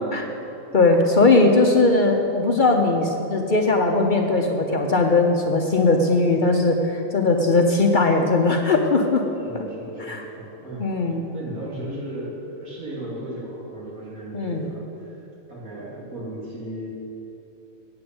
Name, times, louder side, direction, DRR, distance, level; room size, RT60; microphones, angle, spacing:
voice 1, 0.7-9.2 10.1-10.2 10.8-11.2 14.3-14.6, left 3 dB, 45° left, 3 dB, 0.8 m, -19 dB
voice 2, 9.4-16.9, right 1 dB, 85° right, -5 dB, 3.2 m, -35 dB
8.8 x 8.4 x 7.8 m, 2.9 s
omnidirectional pair, 1.4 m